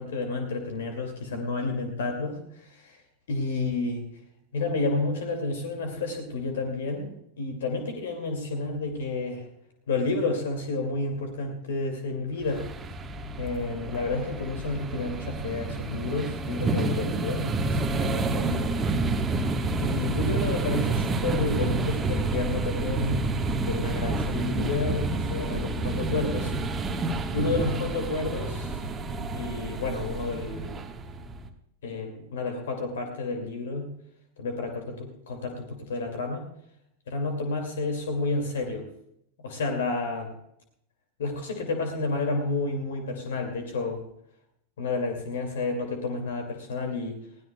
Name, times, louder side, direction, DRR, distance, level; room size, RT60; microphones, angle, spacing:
voice 1, 0.0-3.0 3.3-4.0 4.5-9.5 9.9-12.6 13.4-18.5 19.8-26.5 27.3-30.7 31.8-33.9 34.4-36.4 37.1-38.9 39.4-40.3 41.2-44.0 44.8-47.2, left 3 dB, 60° left, 4 dB, 2.4 m, -30 dB
sound 1, 12.4-31.5, right 2 dB, 20° right, 1.4 m, -29 dB
21.5 x 16.5 x 2.3 m, 0.75 s
figure-of-eight pair, 90°, 0 cm